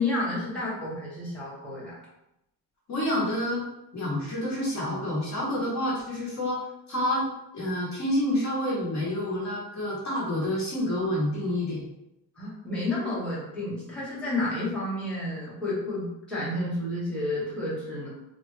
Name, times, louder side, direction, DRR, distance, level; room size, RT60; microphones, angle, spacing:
voice 1, 0.0-1.9 12.3-18.1, left 2 dB, ahead, -9 dB, 1.0 m, -30 dB
voice 2, 2.9-3.6 3.9-7.3 7.5-11.8, left 1 dB, 40° left, -5 dB, 1.0 m, -28 dB
3.4 x 2.1 x 3.1 m, 0.86 s
cardioid pair, 150°, 45 cm